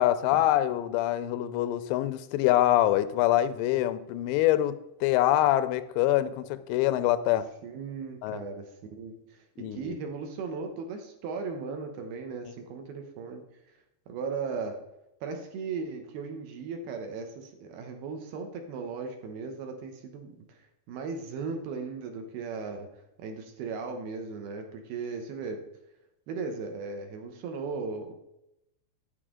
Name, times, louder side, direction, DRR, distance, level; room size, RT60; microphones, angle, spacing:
voice 1, 0.0-7.5 8.2-8.4 9.6-10.0, left 13 dB, 90° left, 12 dB, 2.8 m, -25 dB
voice 2, 7.6-13.4 14.1-14.8 15.2-20.6 20.9-22.9 23.2-25.6 26.3-28.1, right 4 dB, 70° right, 4 dB, 2.7 m, -37 dB
11.0 x 8.2 x 3.7 m, 0.86 s
omnidirectional pair, 4.9 m